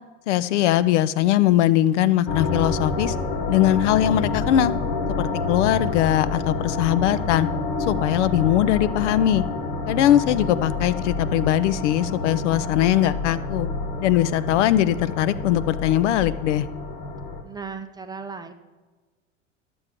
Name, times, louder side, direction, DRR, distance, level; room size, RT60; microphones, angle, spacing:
voice 1, 0.3-3.1 3.5-4.7 5.1-7.5 7.8-9.4 9.9-13.7 14.0-16.7, left 12 dB, 65° left, 16 dB, 0.5 m, -21 dB
sound 1, 2.3-17.4, left 3 dB, 45° left, 1.2 m, -28 dB
voice 2, 17.4-18.5, right 5 dB, 10° right, 6 dB, 0.4 m, -36 dB
11.5 x 6.9 x 3.6 m, 1.3 s
hypercardioid pair, 85°, 38 cm